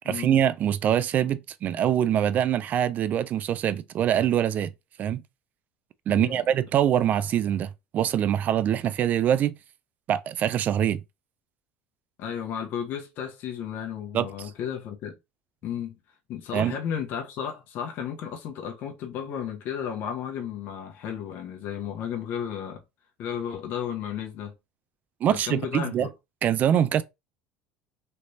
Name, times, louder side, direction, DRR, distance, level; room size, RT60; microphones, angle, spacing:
voice 1, 0.1-4.7 5.0-5.2 6.1-9.6 10.1-11.0 14.1-14.3 16.5-16.8 25.2-26.1 26.4-27.0, right 10 dB, 45° right, 0.4 m, -24 dB
voice 2, 6.1-6.4 12.2-15.1 15.6-16.0 16.3-22.8 23.2-24.5 25.3-26.1, left 8 dB, 60° left, 1.0 m, -33 dB
3.3 x 3.1 x 2.8 m
supercardioid pair, 115°, 4 cm